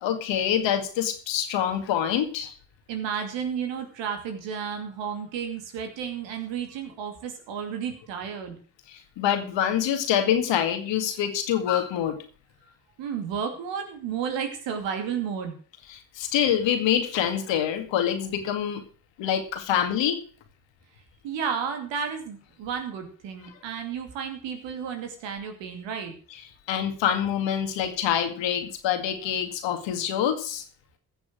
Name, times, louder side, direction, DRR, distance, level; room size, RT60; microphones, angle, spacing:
voice 1, 0.0-2.5 8.9-12.1 15.9-18.8 19.2-20.2 26.7-30.6, left 9 dB, 85° left, 7 dB, 2.1 m, -26 dB
voice 2, 2.9-8.6 13.0-15.6 21.2-26.1, right 7 dB, 85° right, 5 dB, 2.6 m, -32 dB
15.0 x 7.1 x 6.3 m, 0.41 s
hypercardioid pair, 40°, 43 cm